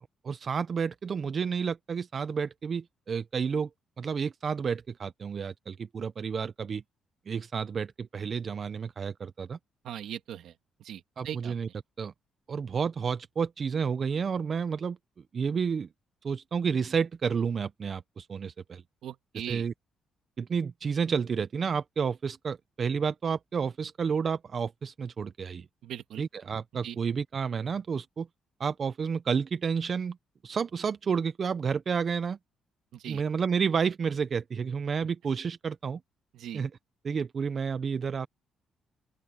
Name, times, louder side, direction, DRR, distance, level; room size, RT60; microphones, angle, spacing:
voice 1, 0.2-3.7 4.0-6.8 7.3-9.6 11.2-11.7 12.0-12.1 12.5-15.0 15.3-15.9 16.2-18.8 19.5-19.7 20.4-25.7 26.2-28.3 28.6-30.2 30.4-32.4 33.1-36.0 36.5-36.7 37.0-38.3, right 6 dB, 30° right, 0.4 m, -30 dB
voice 2, 9.8-10.5 10.8-11.5 19.0-19.6 25.8-26.2 26.8-27.0 32.9-33.2 36.3-36.6, right 10 dB, 65° right, 2.6 m, -39 dB
open air
cardioid pair, 175°, 0 cm